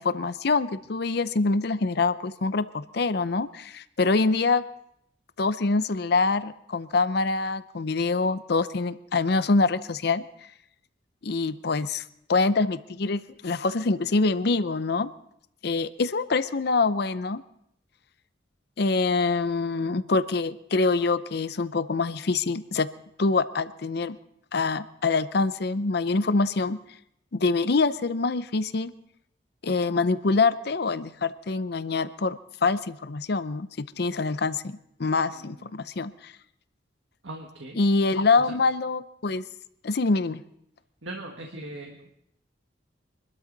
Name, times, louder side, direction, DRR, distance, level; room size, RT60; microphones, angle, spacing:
voice 1, 0.0-4.6 5.4-10.2 11.2-12.0 12.3-15.1 15.6-17.4 18.8-22.9 23.2-24.2 24.5-26.8 27.3-28.9 29.6-36.3 37.8-39.4 39.8-40.4, left 3 dB, 60° left, 14 dB, 0.6 m, -25 dB
voice 2, 35.3-35.9 37.2-37.8 38.4-38.5 41.0-42.0, right 1 dB, 85° right, 1 dB, 1.7 m, -40 dB
24.5 x 12.5 x 4.0 m, 0.76 s
head